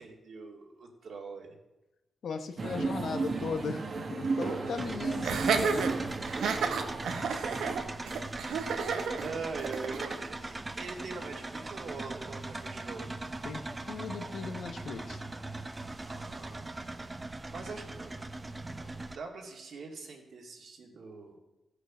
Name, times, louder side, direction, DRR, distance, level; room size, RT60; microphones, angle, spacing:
voice 1, 0.0-1.6 4.6-5.0 7.0-7.6 8.0-8.2 8.5-8.9 9.2-13.0 16.1-16.8 17.5-18.1 19.1-21.4, right 4 dB, 70° right, 0 dB, 2.3 m, -43 dB
voice 2, 2.2-5.9 13.4-13.6 13.9-15.2, left 5 dB, 70° left, 8 dB, 1.0 m, -37 dB
sound 1, 2.6-7.8, right 3 dB, 45° right, 1.4 m, -34 dB
sound 2, 4.8-19.2, right 2 dB, 20° right, 0.7 m, -40 dB
Laughter, 5.2-10.2, right 5 dB, 85° right, 1.2 m, -31 dB
15.0 x 6.6 x 6.1 m, 0.97 s
cardioid pair, 95°, 0 cm